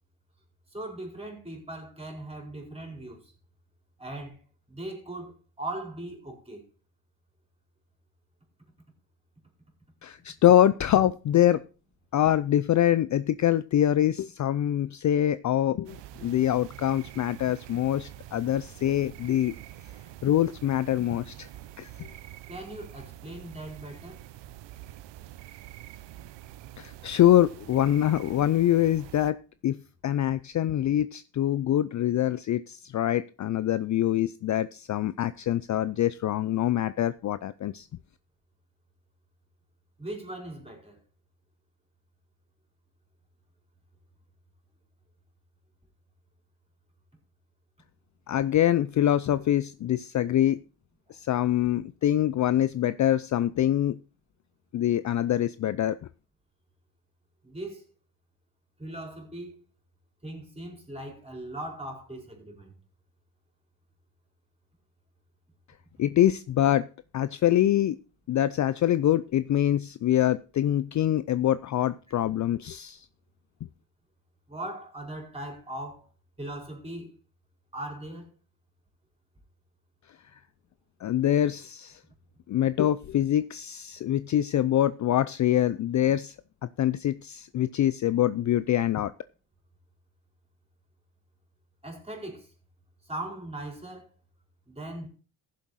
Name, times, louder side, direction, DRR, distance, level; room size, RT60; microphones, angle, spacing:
voice 1, 0.7-3.2 4.0-4.4 4.7-5.3 5.6-6.6 22.5-24.2 40.0-41.0 57.4-57.8 58.8-59.5 60.2-62.7 72.1-72.2 74.5-76.1 76.4-77.1 77.7-78.3 91.8-92.5 93.0-94.1 94.7-95.1, right 1 dB, 15° right, 4.8 m, -39 dB
voice 2, 10.0-11.6 12.1-19.6 20.2-21.5 21.8-22.1 26.8-29.4 29.6-29.8 30.0-37.9 48.3-50.6 51.1-54.0 54.7-56.0 66.0-66.9 67.1-68.0 68.3-73.1 80.3-80.4 81.0-82.0 82.5-86.4 86.8-89.1, left 12 dB, 45° left, 0.5 m, -24 dB
sound 1, 15.8-29.3, right 14 dB, 70° right, 0.9 m, -46 dB
15.5 x 7.4 x 4.2 m
cardioid pair, 100°, 43 cm